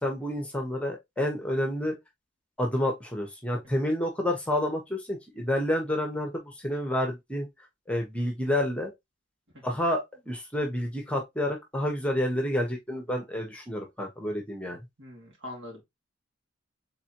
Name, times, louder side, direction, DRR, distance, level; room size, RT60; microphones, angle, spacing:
voice 1, 0.0-2.0 2.6-7.5 7.9-8.9 9.6-14.8, left 1 dB, 5° left, 1.0 m, -29 dB
voice 2, 15.0-15.8, left 1 dB, 75° right, 2.4 m, -42 dB
3.9 x 3.8 x 2.9 m
head